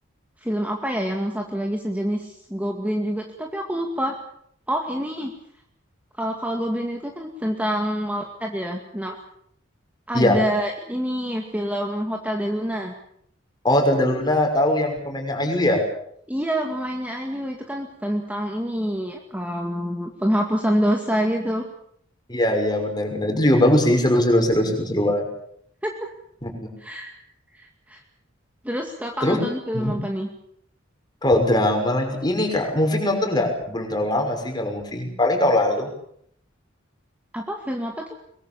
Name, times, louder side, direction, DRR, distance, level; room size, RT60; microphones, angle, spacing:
voice 1, 0.4-4.2 4.7-5.3 6.2-9.2 10.1-12.9 16.3-21.7 25.8-26.1 26.8-27.2 27.5-28.0 28.6-30.3 37.3-38.1, equal, 5° right, 2 dB, 2.3 m, -26 dB
voice 2, 13.6-15.8 22.3-25.2 26.4-26.5 29.2-29.4 29.7-30.0 31.2-35.9, left 1 dB, 20° left, 3 dB, 5.9 m, -21 dB
23.0 x 23.0 x 7.2 m, 0.69 s
head